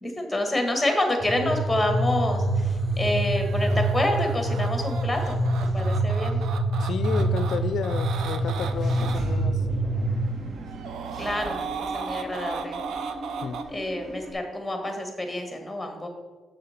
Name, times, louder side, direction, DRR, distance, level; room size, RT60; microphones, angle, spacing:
voice 1, 0.0-5.4 5.7-6.4 11.2-12.8 13.7-16.1, left 1 dB, 5° left, 4 dB, 1.4 m, -28 dB
sound 1, 1.2-10.3, right 1 dB, 20° right, 2.2 m, -26 dB
sound 2, 3.4-9.2 10.6-13.6, right 6 dB, 80° right, 0.5 m, -36 dB
voice 2, 6.8-9.7 13.4-13.6, left 7 dB, 65° left, 10 dB, 0.4 m, -31 dB
Engine / Mechanisms, 8.4-14.3, right 2 dB, 55° right, 0.9 m, -39 dB
6.6 x 6.5 x 4.2 m, 1.4 s
cardioid pair, 120°, 0 cm